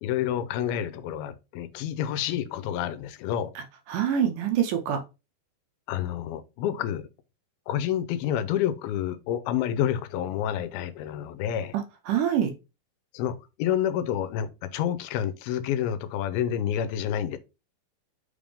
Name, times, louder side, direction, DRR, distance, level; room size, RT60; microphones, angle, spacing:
voice 1, 0.0-3.5 5.9-7.1 7.7-11.8 13.1-17.4, left 10 dB, 90° left, 2.6 m, -29 dB
voice 2, 3.9-5.0 11.7-12.5, right 9 dB, 75° right, 2.1 m, -25 dB
5.8 x 3.5 x 5.0 m
omnidirectional pair, 4.2 m